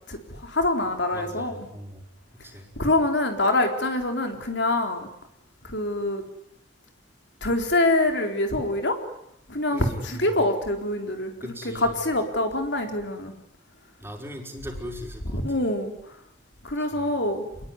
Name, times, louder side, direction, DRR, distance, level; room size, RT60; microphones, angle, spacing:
voice 1, 0.1-1.7 2.8-5.1 5.6-6.2 7.4-9.0 9.5-13.3 15.3-15.9 16.6-17.4, left 2 dB, 60° left, 5 dB, 3.9 m, -25 dB
voice 2, 1.1-2.1 2.4-2.7 9.7-10.4 11.4-11.9 14.0-15.4 16.8-17.2, equal, 10° right, 2 dB, 5.4 m, -39 dB
28.0 x 21.5 x 9.7 m, 0.78 s
head